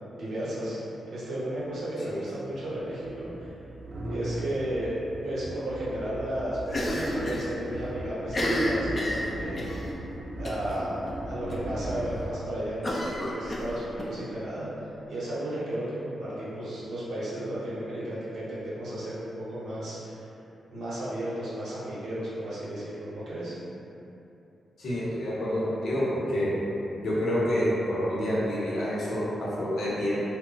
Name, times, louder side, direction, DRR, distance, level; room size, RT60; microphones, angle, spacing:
voice 1, 0.1-0.8 1.1-3.5 4.1-4.9 5.2-10.0 10.3-11.0 11.3-14.7 15.1-20.2 20.7-23.6, right 1 dB, 75° right, -9 dB, 0.9 m, -34 dB
sound 1, 2.5-13.1, right 1 dB, 50° right, 0.4 m, -38 dB
Cough, 6.7-7.5 7.7-7.8 8.2-9.8 10.4-10.7 11.1-11.2 11.5-11.6 12.8-14.1, left 1 dB, 30° left, 0.4 m, -29 dB
voice 2, 24.8-26.5 27.0-30.2, equal, 70° left, -7 dB, 0.7 m, -28 dB
2.1 x 2.1 x 3.7 m, 2.9 s
wide cardioid pair, 125°, 0 cm